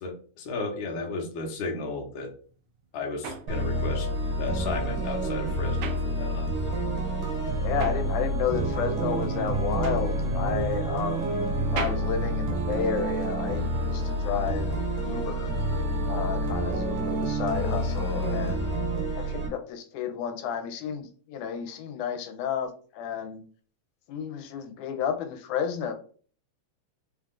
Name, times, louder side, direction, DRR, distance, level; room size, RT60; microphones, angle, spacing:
voice 1, 0.0-2.3 2.9-4.1 4.4-6.5, left 3 dB, 60° left, 0 dB, 1.4 m, -34 dB
sound 1, 2.5-6.8 7.1-13.3, right 6 dB, 85° right, 2.0 m, -41 dB
sound 2, 3.5-19.5, right 1 dB, 55° right, 1.5 m, -28 dB
voice 2, 7.6-15.5 16.1-18.7 19.2-23.4 24.1-25.9, left 8 dB, 85° left, 7 dB, 2.1 m, -32 dB
5.1 x 2.4 x 3.7 m, 0.43 s
omnidirectional pair, 3.5 m